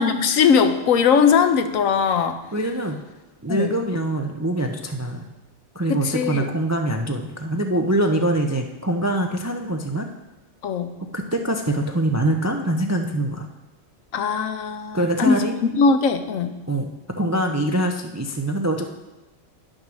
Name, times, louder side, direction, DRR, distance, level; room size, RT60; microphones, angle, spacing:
voice 1, 0.0-2.4 3.5-3.8 5.9-6.5 10.6-11.0 14.1-16.6, left 6 dB, 80° left, 8 dB, 1.2 m, -20 dB
voice 2, 2.5-3.0 3.4-5.2 5.7-10.1 11.1-13.5 14.9-15.6 16.7-18.9, right 1 dB, 25° right, 4 dB, 0.4 m, -24 dB
10.5 x 6.3 x 6.3 m, 1.1 s
omnidirectional pair, 1.4 m